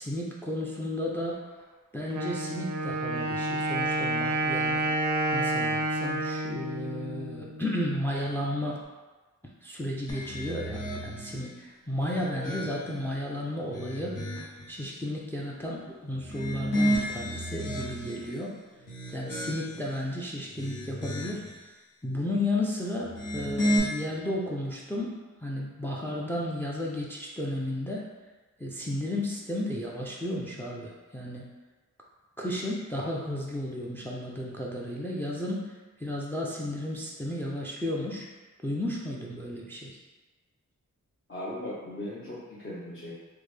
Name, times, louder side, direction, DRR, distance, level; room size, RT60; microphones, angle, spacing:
voice 1, 0.0-1.4 1.9-4.9 5.3-8.8 9.6-14.2 14.7-18.5 19.1-21.5 22.0-28.1 28.6-31.4 32.4-35.7 36.0-38.3 38.6-40.0, left 1 dB, 5° left, -2 dB, 0.4 m, -33 dB
Wind instrument woodwind instrument, 2.1-7.8, right 1 dB, 75° right, 0.5 m, -29 dB
sound 1, 10.1-11.4 11.9-13.1 13.6-14.7 16.2-18.3 18.8-19.9 20.4-21.5 23.0-23.8, equal, 90° left, 0.8 m, -32 dB
voice 2, 41.3-43.2, left 1 dB, 40° left, -10 dB, 0.8 m, -38 dB
3.5 x 2.1 x 3.2 m, 1.2 s
wide cardioid pair, 65°, 31 cm